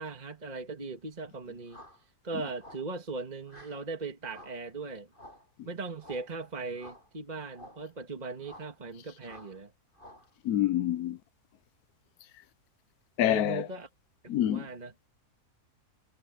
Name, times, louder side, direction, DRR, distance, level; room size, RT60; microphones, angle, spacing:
voice 1, 0.0-1.8 2.2-5.1 5.7-9.7 13.3-13.9 14.4-14.9, right 4 dB, 25° right, 1.9 m, -39 dB
sound 1, 1.7-2.0 2.6-2.9 3.5-3.8 4.3-4.6 5.1-5.5 6.0-6.3 6.7-7.1 7.5-7.9 8.4-8.8 9.2-9.6 9.9-10.3, left 1 dB, 35° left, 7.6 m, -51 dB
voice 2, 10.4-11.2 13.2-13.7 14.3-14.7, left 12 dB, 80° left, 1.2 m, -26 dB
omnidirectional pair, 1.6 m